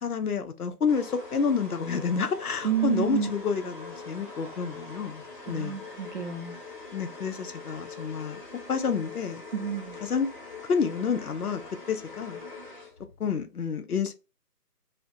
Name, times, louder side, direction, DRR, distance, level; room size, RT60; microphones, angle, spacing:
voice 1, 0.0-5.8 6.9-8.4 8.7-9.4 10.0-10.3 10.6-11.6 11.9-12.4 13.2-14.1, left 6 dB, 65° left, 0.5 m, -29 dB
sound 1, 0.9-13.2, left 3 dB, 30° left, 0.8 m, -43 dB
voice 2, 2.6-3.3 5.5-6.5 9.5-10.0, right 9 dB, 50° right, 0.6 m, -29 dB
2.3 x 2.1 x 2.5 m
figure-of-eight pair, 155°, 48 cm